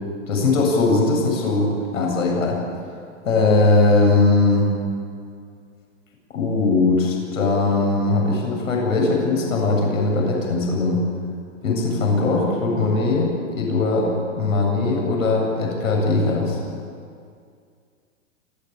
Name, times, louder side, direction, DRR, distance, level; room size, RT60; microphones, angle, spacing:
voice 1, 0.3-2.6 3.2-4.7 6.3-11.0 11.6-16.6, left 3 dB, 85° left, 0 dB, 7.9 m, -20 dB
28.5 x 15.5 x 9.0 m, 2.3 s
hypercardioid pair, 155°, 39 cm